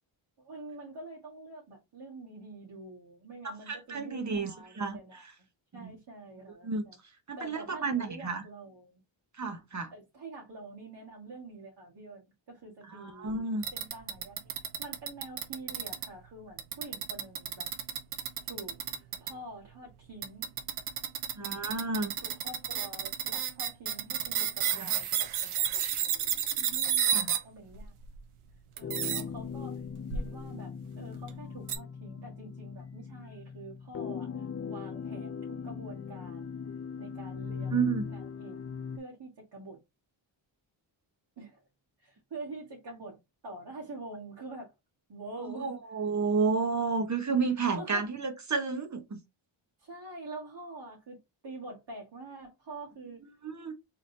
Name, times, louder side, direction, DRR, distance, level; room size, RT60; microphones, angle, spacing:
voice 1, 0.4-5.3 5.7-7.0 7.4-9.0 9.9-14.5 14.8-17.7 18.4-20.5 21.3-27.9 28.7-29.8 30.1-36.6 37.0-38.6 39.0-39.8 41.4-41.6 42.0-44.7 45.1-45.8 47.7-48.1 49.8-53.2, right 2 dB, 55° right, 1.8 m, -46 dB
voice 2, 3.4-5.0 5.8-5.9 6.6-6.8 7.3-8.4 9.4-9.9 12.9-13.6 21.4-22.1 24.8-24.9 27.1-27.3 37.7-38.1 45.6-49.2 53.4-53.7, right 4 dB, 35° right, 1.0 m, -31 dB
sound 1, 13.6-16.1 16.6-19.3 20.2-27.4 27.7-28.2 28.8-29.2 30.1-30.3 31.1-31.3 31.7-31.8, right 9 dB, 85° right, 0.8 m, -31 dB
sound 2, 28.8-39.0, left 6 dB, 30° left, 0.4 m, -39 dB
3.9 x 3.3 x 2.7 m
cardioid pair, 80°, 49 cm